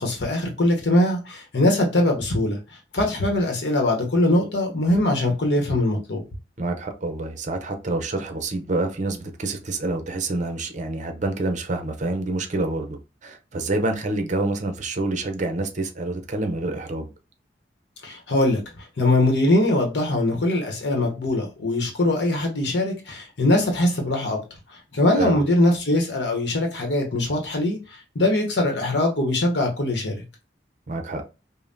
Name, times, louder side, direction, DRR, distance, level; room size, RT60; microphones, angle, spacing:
voice 1, 0.0-2.6 2.9-6.2 18.0-18.6 19.0-24.4 24.9-27.8 28.1-30.1, left 1 dB, 75° left, 0.9 m, -21 dB
voice 2, 6.6-17.1 25.1-25.4 30.9-31.3, right 2 dB, 45° right, 0.6 m, -27 dB
5.3 x 2.1 x 2.6 m
head